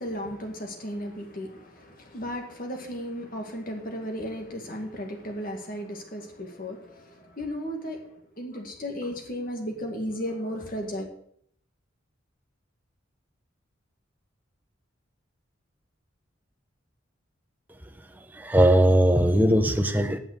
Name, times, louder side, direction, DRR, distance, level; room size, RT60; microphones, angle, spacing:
voice 1, 0.0-8.1 8.4-11.1, equal, 45° left, 2.1 m, -35 dB
voice 2, 18.3-20.2, right 1 dB, 10° right, 0.9 m, -19 dB
9.2 x 7.8 x 7.9 m
head